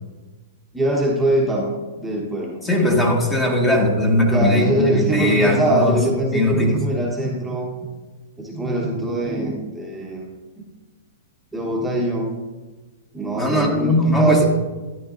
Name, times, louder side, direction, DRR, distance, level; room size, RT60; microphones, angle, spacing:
voice 1, 0.7-1.7 2.0-2.6 4.3-7.7 8.4-10.2 11.5-12.3 13.1-14.5, right 1 dB, 5° right, -3 dB, 1.2 m, -22 dB
voice 2, 2.6-6.1 6.3-6.8 13.4-14.5, left 1 dB, 10° left, 1 dB, 1.4 m, -19 dB
13.0 x 10.0 x 2.6 m, 1.3 s
hypercardioid pair, 140°, 0 cm